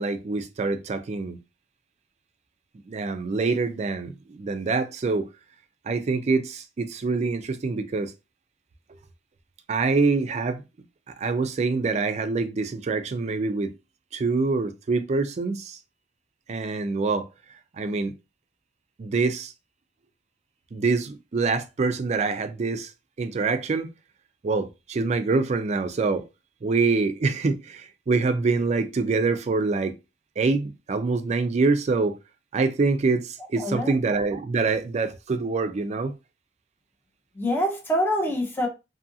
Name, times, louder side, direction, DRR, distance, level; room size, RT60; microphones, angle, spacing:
voice 1, 0.0-1.4 2.9-5.3 5.8-8.1 9.7-10.6 11.1-13.7 14.1-15.8 16.5-17.3 17.7-18.1 19.0-19.5 20.7-22.9 23.2-23.9 24.4-26.3 26.6-29.9 30.4-32.2 32.5-36.2, right 4 dB, 40° right, 0.3 m, -25 dB
voice 2, 33.6-33.9 37.3-38.7, equal, 10° left, 0.6 m, -25 dB
2.6 x 2.4 x 2.6 m
head